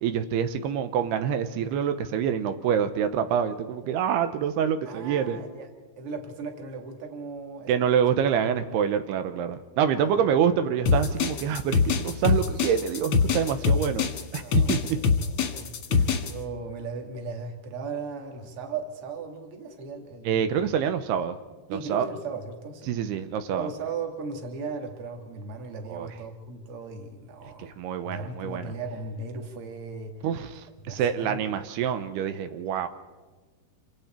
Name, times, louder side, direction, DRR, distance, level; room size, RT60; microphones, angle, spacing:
voice 1, 0.0-5.4 7.7-14.4 14.7-15.0 15.9-16.1 20.3-21.4 21.7-22.1 22.9-23.7 25.8-26.1 27.6-28.7 30.2-32.9, right 8 dB, 85° right, 9 dB, 2.9 m, -26 dB
voice 2, 4.8-5.7 6.0-7.7 9.9-10.1 14.4-15.1 15.4-15.7 16.2-20.6 21.7-22.9 23.5-27.7 28.0-30.1 30.8-31.4, right 4 dB, 40° right, 3 dB, 2.6 m, -37 dB
sound 1, 10.9-16.3, left 5 dB, 55° left, 1.6 m, -23 dB
27.5 x 24.5 x 4.5 m, 1.3 s
omnidirectional pair, 4.7 m